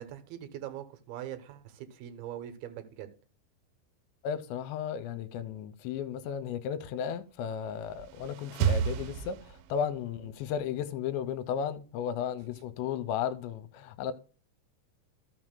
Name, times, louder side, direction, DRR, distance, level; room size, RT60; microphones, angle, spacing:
voice 1, 0.0-3.1, right 11 dB, 70° right, 2.5 m, -42 dB
voice 2, 4.2-14.1, left 8 dB, 80° left, 2.9 m, -34 dB
sound 1, 7.6-10.0, right 8 dB, 90° right, 2.9 m, -32 dB
14.5 x 6.3 x 2.2 m
omnidirectional pair, 5.2 m